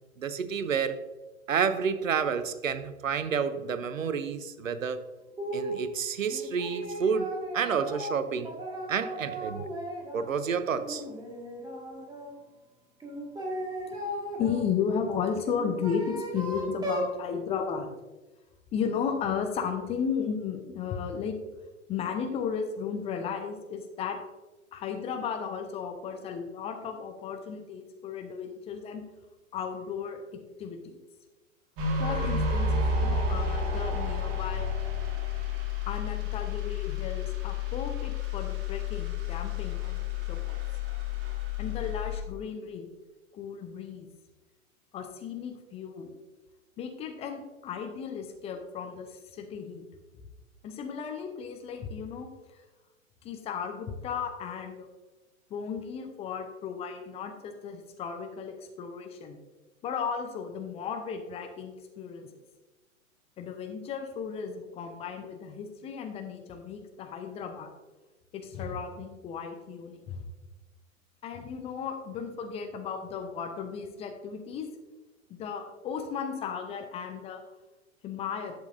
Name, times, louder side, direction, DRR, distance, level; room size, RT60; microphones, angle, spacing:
voice 1, 0.2-1.0 1.5-5.0 5.5-8.5 8.9-9.7 10.1-11.0, right 6 dB, 70° right, 12 dB, 0.8 m, -29 dB
sound 1, 5.4-5.8 6.3-10.3 10.7-12.3 13.0-14.6 15.4-17.1, equal, 10° right, 1.8 m, -36 dB
voice 2, 14.4-17.9 18.7-21.4 21.9-24.2 24.7-29.0 29.5-30.2 30.6-31.0 32.0-34.7 35.9-40.6 41.6-42.9 43.3-44.1 44.9-46.2 46.8-49.9 50.6-52.6 53.2-54.9 55.5-59.4 59.8-62.4 63.4-67.7 68.3-70.2 71.2-74.7 75.3-77.4 78.0-78.5, left 6 dB, 15° left, 5 dB, 0.6 m, -35 dB
sound 2, 31.8-42.2, left 4 dB, 40° right, 2.1 m, -30 dB
11.5 x 8.1 x 2.6 m, 1.1 s
figure-of-eight pair, 105°, 41 cm